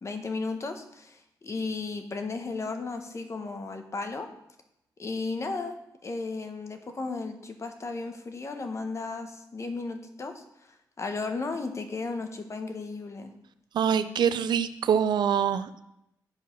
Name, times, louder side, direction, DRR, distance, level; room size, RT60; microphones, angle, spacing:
voice 1, 0.0-4.3 5.0-10.4 11.0-13.3, left 3 dB, 40° left, 6 dB, 1.0 m, -34 dB
voice 2, 13.7-15.8, right 8 dB, 75° right, 12 dB, 0.5 m, -25 dB
7.8 x 4.7 x 5.9 m, 0.82 s
cardioid pair, 95°, 8 cm